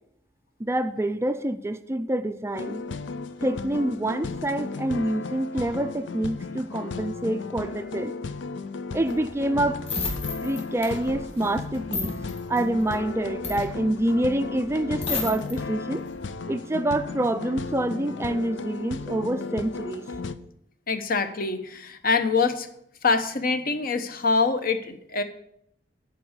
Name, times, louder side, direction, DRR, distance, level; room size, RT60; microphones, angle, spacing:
voice 1, 0.6-2.8 3.4-8.1 8.9-9.8 10.4-12.1 12.5-16.1 16.5-20.0, right 1 dB, 15° right, 10 dB, 0.4 m, -27 dB
sound 1, 2.5-20.4, left 4 dB, 85° left, 0.6 m, -35 dB
sound 2, 8.9-15.6 16.0-16.3, left 3 dB, 35° left, 2.9 m, -33 dB
voice 2, 20.9-22.7 23.0-25.2, left 4 dB, 50° left, 9 dB, 0.9 m, -24 dB
10.5 x 4.8 x 7.9 m, 0.73 s
head